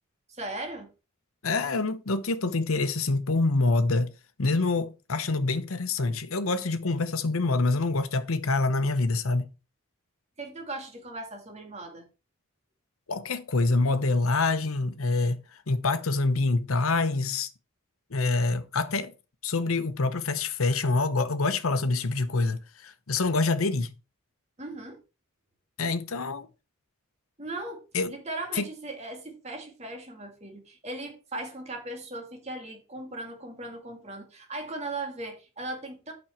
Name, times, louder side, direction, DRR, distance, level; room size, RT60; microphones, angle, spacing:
voice 1, 0.3-0.9 10.4-12.1 24.6-25.0 27.4-27.8 28.1-36.1, right 2 dB, 30° right, 2.2 m, -38 dB
voice 2, 1.4-4.1 4.4-9.4 13.1-15.4 15.7-17.5 18.1-19.1 19.4-23.9 25.8-26.5 27.9-28.1 28.6-28.7, left 3 dB, 85° left, 0.9 m, -26 dB
8.8 x 6.3 x 4.4 m
head